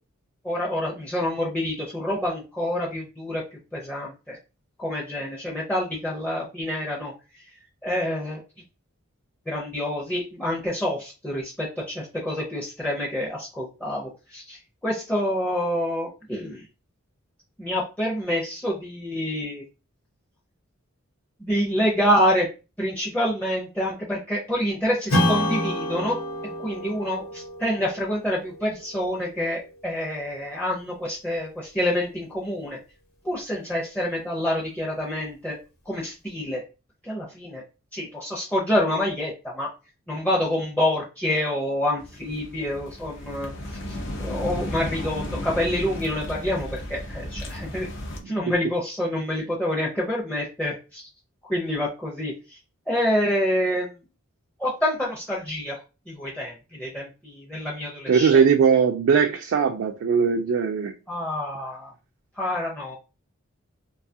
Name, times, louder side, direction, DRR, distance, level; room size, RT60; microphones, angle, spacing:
voice 1, 0.4-3.4 3.7-4.4 4.8-7.1 7.8-8.4 9.5-16.6 17.6-19.6 21.4-22.5 22.8-26.2 26.6-32.8 33.2-35.6 35.9-36.6 37.0-37.6 37.9-39.7 40.1-47.9 48.3-51.0 51.4-52.6 52.9-53.9 54.6-58.4 61.1-61.9 62.4-63.0, left 1 dB, 5° left, 0.5 m, -27 dB
Strum, 25.1-30.0, left 1 dB, 80° left, 1.1 m, -29 dB
sound 1, 42.0-48.2, left 1 dB, 60° left, 0.6 m, -34 dB
voice 2, 58.1-60.9, right 6 dB, 65° right, 0.3 m, -19 dB
2.7 x 2.3 x 2.6 m
head